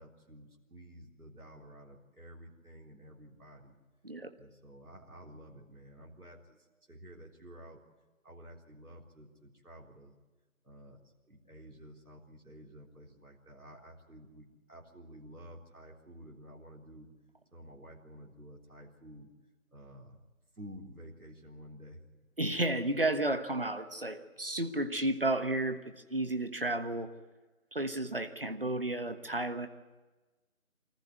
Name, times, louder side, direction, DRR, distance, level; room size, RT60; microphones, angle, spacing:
voice 1, 0.0-3.8 4.4-7.8 8.2-10.2 10.6-11.0 11.3-17.1 17.5-19.3 19.7-20.2 20.5-22.0, equal, 85° right, 0 dB, 3.9 m, -52 dB
voice 2, 22.4-27.1 27.7-29.7, right 1 dB, 40° right, 8 dB, 1.3 m, -32 dB
25.0 x 14.5 x 9.5 m, 1.2 s
figure-of-eight pair, 175°, 43 cm